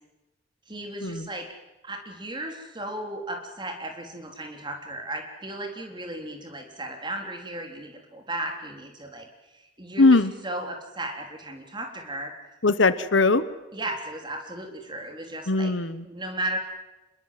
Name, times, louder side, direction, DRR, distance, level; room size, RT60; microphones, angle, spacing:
voice 1, 0.7-1.5 1.8-9.3 9.5-10.1 10.4-12.3 13.7-15.7 16.0-16.6, right 1 dB, 25° right, 3 dB, 3.7 m, -35 dB
voice 2, 10.0-10.3 12.6-13.4 15.5-16.0, left 3 dB, 85° left, 14 dB, 1.2 m, -20 dB
26.5 x 22.0 x 7.6 m, 1.1 s
head